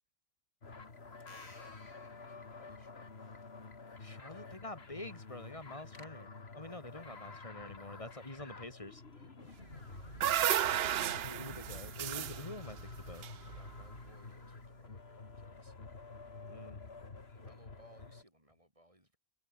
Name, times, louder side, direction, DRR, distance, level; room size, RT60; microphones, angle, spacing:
sound 1, 0.6-18.2, left 4 dB, 50° left, 2.4 m, -50 dB
sound 2, 0.7-6.1, left 2 dB, 75° left, 7.0 m, -62 dB
voice 1, 1.5-3.2 4.2-4.7 7.0-8.5 9.0-10.9 13.1-15.7 17.3-19.2, right 1 dB, 25° right, 8.0 m, -65 dB
voice 2, 4.0-9.0 9.4-9.5 11.2-13.2 16.5-16.8, left 2 dB, 25° left, 2.3 m, -47 dB
sound 3, 9.7-14.0, right 11 dB, 60° right, 0.7 m, -34 dB
omnidirectional pair, 1.4 m